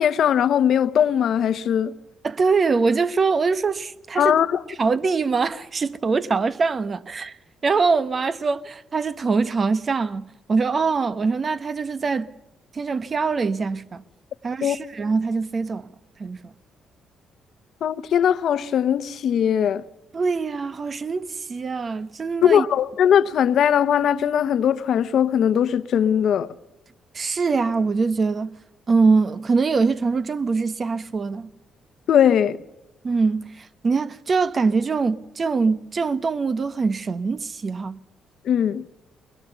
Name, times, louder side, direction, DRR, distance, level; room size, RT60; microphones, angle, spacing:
voice 1, 0.0-1.9 4.2-4.6 14.6-14.8 17.8-19.8 22.4-26.5 32.1-32.6 38.4-38.9, left 9 dB, 65° left, 1.0 m, -20 dB
voice 2, 2.2-4.4 4.8-7.4 7.6-12.3 12.7-14.0 14.4-15.9 16.2-16.5 20.1-22.6 27.1-28.6 28.9-31.5 33.0-38.0, right 4 dB, 40° right, 1.0 m, -23 dB
23.0 x 21.5 x 6.9 m
cardioid pair, 90°, 0 cm